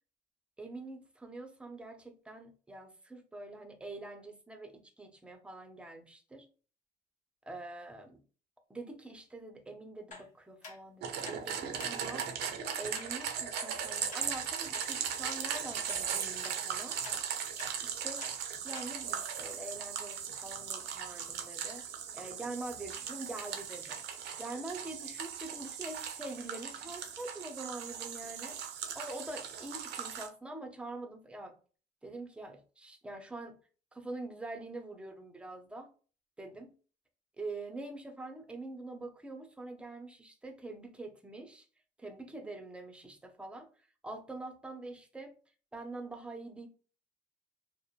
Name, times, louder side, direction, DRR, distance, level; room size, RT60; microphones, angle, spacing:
voice 1, 0.6-6.5 7.4-8.2 8.7-17.3 17.8-18.2 18.6-21.8 22.1-24.0 24.4-28.6 29.0-31.6 32.0-33.6 33.9-35.9 36.4-36.7 37.4-41.7 42.0-45.3 45.7-46.7, right 2 dB, 5° right, 5 dB, 0.5 m, -45 dB
sound 1, 10.1-10.3 10.6-10.8 11.2-11.4 11.8-11.9 12.4-12.6 12.9-13.1 13.6-13.7 14.1-14.2 14.7-14.9 15.3-15.4 15.9-16.0 16.4-16.6 17.0-17.2 17.6-17.7 18.2-18.4 18.7-18.9 19.4-19.5, left 3 dB, 45° left, 0.9 m, -47 dB
sound 2, 11.0-30.3, right 8 dB, 80° right, 0.5 m, -38 dB
2.8 x 2.0 x 2.4 m, 0.38 s
cardioid pair, 110°, 17 cm